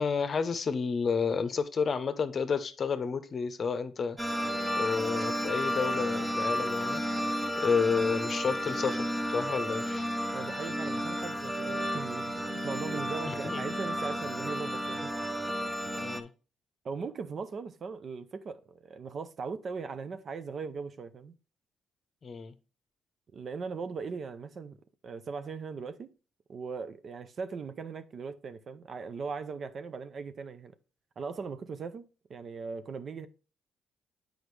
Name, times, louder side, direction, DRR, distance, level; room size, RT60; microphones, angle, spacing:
voice 1, 0.0-4.2 4.7-7.0 7.6-10.1 13.3-13.6 16.0-16.3 22.2-22.5, left 5 dB, 45° left, 0.7 m, -31 dB
sound 1, 4.2-16.2, equal, 10° right, 0.7 m, -32 dB
voice 2, 10.3-15.1 15.4-15.6 16.8-21.3 23.3-24.8 25.0-26.1 26.5-30.7 31.2-32.0 32.3-33.3, right 5 dB, 50° right, 0.6 m, -39 dB
7.9 x 5.0 x 3.2 m
cardioid pair, 90°, 0 cm